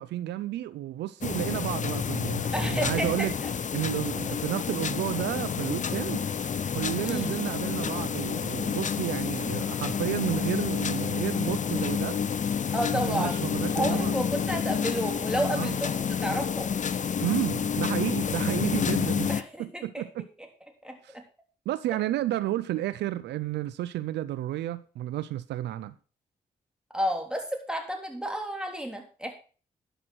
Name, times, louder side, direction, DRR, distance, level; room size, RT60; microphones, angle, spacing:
voice 1, 0.0-3.3 3.7-6.2 6.7-12.2 12.9-14.1 15.5-15.8 17.2-19.3 19.6-20.3 21.0-21.2 21.7-25.9, right 14 dB, 80° right, 0.5 m, -31 dB
sound 1, 1.2-19.4, left 7 dB, 45° left, 0.6 m, -29 dB
voice 2, 2.5-3.3 7.0-7.4 12.7-13.3 13.7-16.7 19.3-19.8 20.8-21.2 26.9-29.3, equal, 5° right, 3.5 m, -31 dB
11.0 x 5.9 x 5.9 m
supercardioid pair, 45°, 18 cm